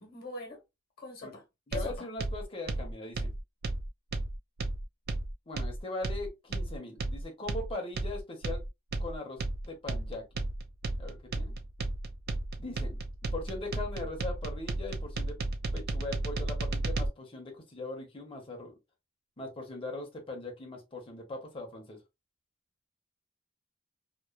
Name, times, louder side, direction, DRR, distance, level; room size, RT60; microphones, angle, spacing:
voice 1, 0.0-0.6 1.0-1.4 1.7-2.1, left 3 dB, 50° left, 1.0 m, -41 dB
voice 2, 1.7-3.3 5.5-8.6 9.0-9.4 9.7-10.3 11.0-11.5 12.6-13.0 13.3-15.4 15.7-18.8 19.4-22.0, left 2 dB, 25° left, 0.8 m, -40 dB
sound 1, 1.7-17.1, right 2 dB, 50° right, 0.4 m, -34 dB
2.9 x 2.0 x 2.2 m
head